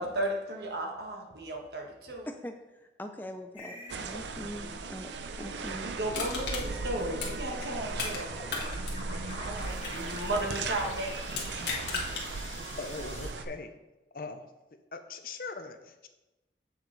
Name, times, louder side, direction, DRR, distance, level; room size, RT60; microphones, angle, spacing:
voice 1, 0.0-2.3 5.8-8.4 9.3-11.6, right 1 dB, 70° right, 1 dB, 1.4 m, -35 dB
voice 2, 2.3-2.6 3.0-5.1 5.4-6.0, equal, 10° left, 5 dB, 0.4 m, -42 dB
sound 1, 3.5-4.0 7.7-13.3, left 2 dB, 35° left, 2.1 m, -46 dB
sound 2, 3.9-13.5, right 3 dB, 85° right, 0.6 m, -37 dB
Crushing, 6.1-8.2 8.5-10.7 11.3-12.3 12.7-12.8, left 4 dB, 75° left, 1.6 m, -36 dB
voice 3, 12.8-13.7 14.1-14.4 14.9-16.1, left 3 dB, 55° left, 7 dB, 0.6 m, -40 dB
7.4 x 7.0 x 4.0 m, 1.0 s
head